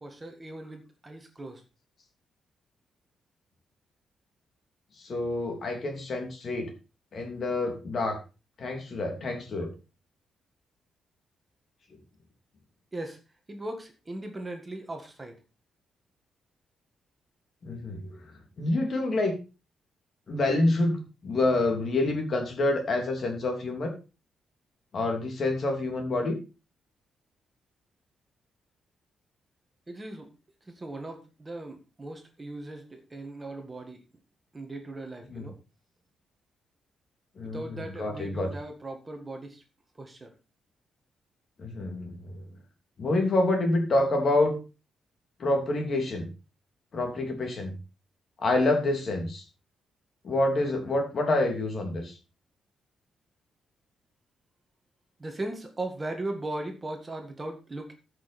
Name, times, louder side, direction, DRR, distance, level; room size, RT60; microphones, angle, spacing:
voice 1, 0.0-1.6 12.9-13.2 13.5-15.3 29.9-30.3 30.8-34.0 34.5-35.5 37.5-39.6 40.0-40.3 55.2-57.9, right 2 dB, 20° right, 4 dB, 1.8 m, -38 dB
voice 2, 5.0-6.7 7.1-8.2 8.6-9.7 17.6-19.3 20.3-23.9 24.9-26.4 35.3-35.5 37.4-38.5 41.6-42.4 43.0-44.6 45.4-46.3 46.9-47.7 48.4-49.4 50.2-52.2, left 2 dB, 40° left, 3 dB, 3.0 m, -27 dB
14.5 x 6.4 x 4.3 m, 0.31 s
cardioid pair, 145°, 0 cm